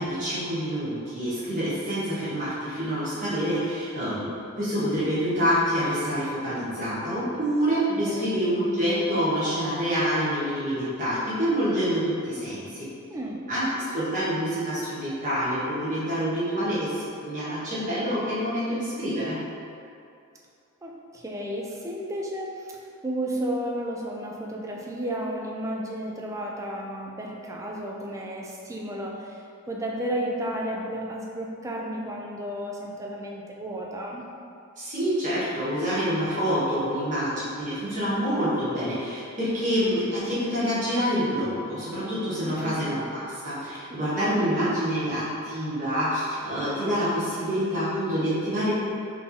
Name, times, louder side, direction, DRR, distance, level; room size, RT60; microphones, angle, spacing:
voice 1, 0.0-4.3 4.6-12.9 13.5-19.4 34.8-48.7, equal, 35° right, -11 dB, 1.4 m, -27 dB
voice 2, 13.1-13.5 20.8-34.3 42.4-42.8 43.9-44.5, right 1 dB, 15° right, -1 dB, 0.4 m, -33 dB
4.2 x 3.7 x 2.7 m, 2.5 s
head